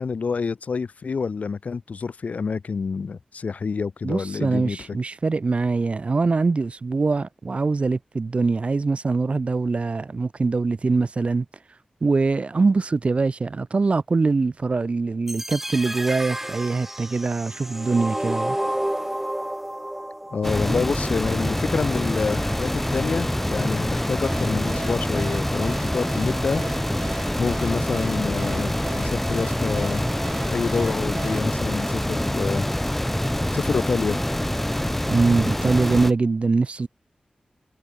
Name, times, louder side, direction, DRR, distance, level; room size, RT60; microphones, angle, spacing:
voice 1, 0.0-4.8 20.3-26.6 27.4-30.0 30.5-32.7 33.5-34.2, left 5 dB, 80° left, 2.7 m, -27 dB
voice 2, 4.0-11.5 12.0-18.6 20.7-20.8 35.1-36.9, right 3 dB, 55° right, 0.7 m, -23 dB
sound 1, 15.3-21.3, right 1 dB, 10° right, 0.9 m, -31 dB
sound 2, 20.4-36.1, left 1 dB, 10° left, 0.4 m, -25 dB
sound 3, 24.2-32.7, right 5 dB, 80° right, 1.6 m, -40 dB
wide cardioid pair, 60°, 2 cm